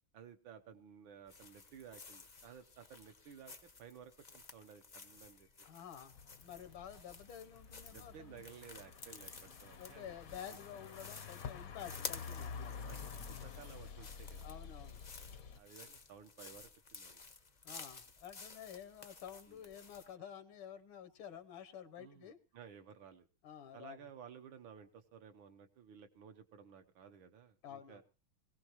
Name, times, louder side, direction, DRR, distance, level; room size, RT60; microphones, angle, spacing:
voice 1, 0.1-3.5 3.8-5.7 7.9-10.1 12.9-14.5 15.5-17.2 19.5-19.6 22.0-23.2 23.7-28.0, right 7 dB, 70° right, 6 dB, 1.7 m, -56 dB
sound 1, 1.3-20.1, left 4 dB, 40° left, 0.6 m, -53 dB
voice 2, 5.6-6.1 6.4-8.4 9.8-12.9 14.4-15.0 17.6-22.4 23.4-24.1 27.6-28.0, left 9 dB, 75° left, 9 dB, 1.7 m, -51 dB
sound 2, 6.1-15.6, left 6 dB, 55° left, 1.0 m, -49 dB
21.0 x 16.5 x 3.0 m, 0.33 s
omnidirectional pair, 2.3 m